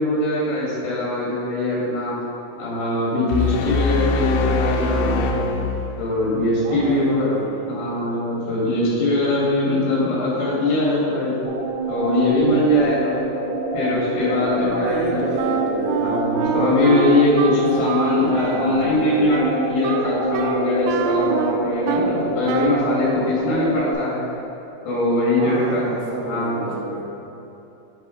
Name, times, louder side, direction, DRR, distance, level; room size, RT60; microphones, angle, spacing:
voice 1, 0.0-2.1 2.6-5.5 6.0-7.3 7.7-11.4 11.9-13.2 13.7-15.2 16.0-24.2 24.9-25.9 26.2-26.8, left 2 dB, 60° left, -6 dB, 4.0 m, -21 dB
sound 1, 3.3-6.6, left 3 dB, 90° left, 3.2 m, -23 dB
voice 2, 6.6-8.0 10.6-10.7 14.7-16.0 17.5-17.6 18.5-19.2 21.2-21.3 25.4-27.0, right 3 dB, 60° right, -5 dB, 2.4 m, -31 dB
sound 2, 11.4-23.9, right 2 dB, 45° left, 2.1 m, -26 dB
Wind instrument woodwind instrument, 15.4-22.2 22.5-22.9, right 7 dB, 85° right, 3.0 m, -26 dB
8.6 x 6.2 x 5.1 m, 2.9 s
omnidirectional pair, 5.7 m